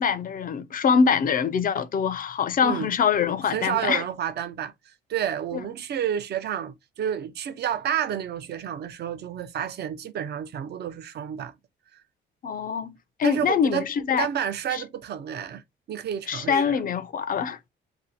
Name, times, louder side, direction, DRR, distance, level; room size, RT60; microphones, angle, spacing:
voice 1, 0.0-4.0 5.5-5.6 12.4-12.9 13.2-14.3 14.7-14.8 16.3-17.7, left 6 dB, 45° left, 0.5 m, -24 dB
voice 2, 3.5-4.7 5.1-11.5 13.2-13.9 14.2-15.6 15.9-16.8, right 9 dB, 55° right, 0.6 m, -30 dB
2.7 x 2.1 x 3.9 m
cardioid pair, 90°, 20 cm